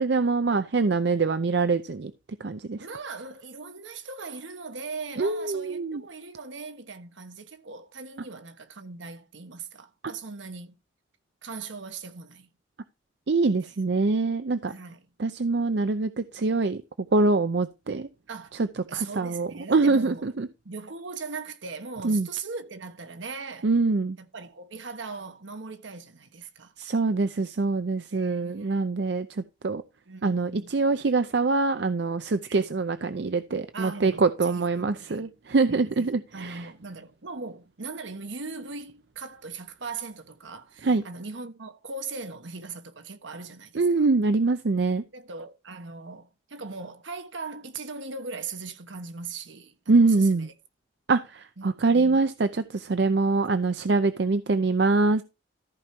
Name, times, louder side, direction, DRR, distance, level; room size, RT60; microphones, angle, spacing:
voice 1, 0.0-2.1 2.4-2.8 5.2-6.0 13.3-14.7 15.2-16.8 17.1-18.1 18.6-20.5 22.0-22.3 23.6-24.2 26.8-29.8 30.2-36.7 40.8-41.0 43.7-45.0 49.9-50.5 51.1-55.2, right 3 dB, 65° right, 0.5 m, -24 dB
voice 2, 2.8-10.8 11.4-12.5 13.6-13.8 14.7-15.1 18.3-18.6 18.9-20.3 20.6-23.7 24.2-26.7 28.1-28.8 30.1-30.7 32.4-32.7 33.7-35.3 35.7-36.1 36.3-44.1 45.1-50.5 51.6-52.2, right 4 dB, 80° right, 1.3 m, -39 dB
14.0 x 5.2 x 4.4 m
head